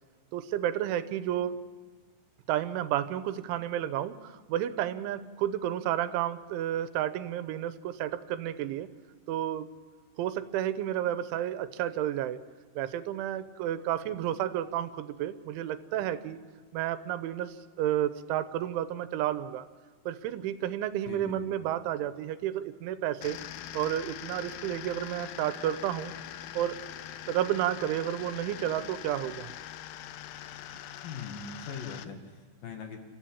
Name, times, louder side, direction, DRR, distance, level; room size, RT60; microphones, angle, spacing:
voice 1, 0.3-1.6 2.5-8.9 9.3-9.7 10.2-12.4 12.8-16.4 16.7-19.6 20.1-23.4 23.7-26.1 26.6-26.8 27.3-29.5, right 11 dB, 85° right, 12 dB, 3.3 m, -31 dB
voice 2, 21.1-21.5 31.0-33.0, left 5 dB, 55° left, 4 dB, 3.4 m, -41 dB
sound 1, 23.2-32.0, left 12 dB, 90° left, 2.1 m, -43 dB
30.0 x 14.5 x 8.7 m, 1.5 s
omnidirectional pair, 5.4 m